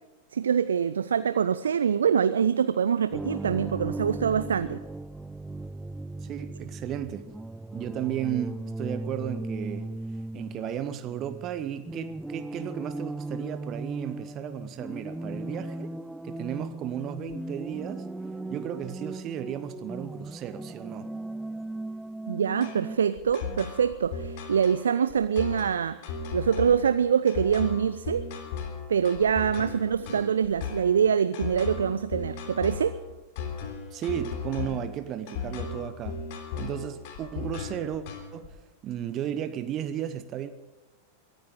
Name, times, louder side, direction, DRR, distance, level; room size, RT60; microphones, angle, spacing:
voice 1, 0.3-4.8 22.3-26.0 26.3-28.3 28.9-33.0, right 7 dB, 70° right, 0.5 m, -25 dB
sound 1, 3.1-23.0, right 2 dB, 5° right, 0.4 m, -37 dB
voice 2, 6.2-7.3 7.7-9.9 10.3-15.9 16.2-18.1 18.5-21.2 33.9-36.2 36.6-38.0 38.3-40.5, right 10 dB, 35° right, 1.1 m, -34 dB
sound 2, 22.6-38.5, left 5 dB, 50° left, 3.2 m, -36 dB
23.0 x 14.5 x 3.8 m
figure-of-eight pair, 90°, 0 cm